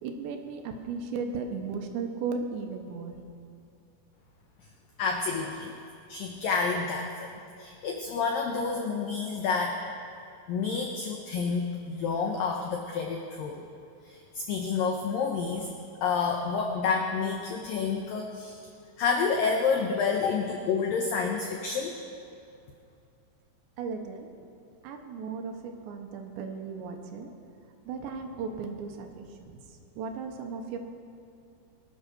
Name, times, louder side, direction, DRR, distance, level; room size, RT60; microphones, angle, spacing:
voice 1, 0.0-3.2 23.8-24.3 24.8-27.3 27.9-30.8, right 5 dB, 75° right, 4 dB, 3.2 m, -36 dB
voice 2, 5.0-5.7 6.1-7.3 7.6-9.8 10.5-13.6 14.0-15.7 16.0-18.6 19.0-21.9, left 5 dB, 85° left, 2 dB, 2.0 m, -29 dB
23.5 x 8.7 x 6.2 m, 2.5 s
omnidirectional pair, 5.3 m